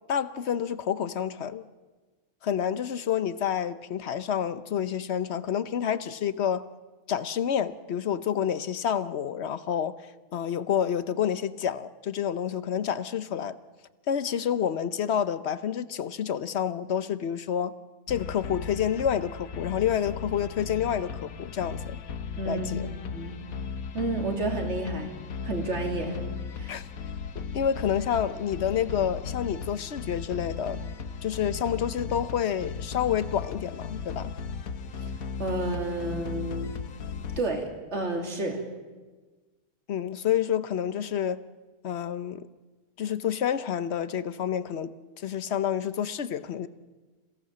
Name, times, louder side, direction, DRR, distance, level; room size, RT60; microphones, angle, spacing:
voice 1, 0.1-1.6 2.4-6.7 7.1-10.0 10.3-13.6 14.1-17.7 18.1-22.0 22.5-22.9 26.7-26.9 27.5-30.8 31.2-34.3 39.9-41.4 41.8-42.5 43.0-46.7, left 9 dB, 55° left, 1.0 m, -28 dB
sound 1, 18.1-37.4, left 5 dB, 85° left, 1.5 m, -36 dB
voice 2, 22.4-22.7 23.1-23.4 23.9-25.1 25.4-26.2 26.5-26.8 34.9-35.1 35.4-36.7 37.4-38.6, right 2 dB, 55° right, 3.2 m, -31 dB
27.5 x 17.0 x 7.5 m
omnidirectional pair, 1.4 m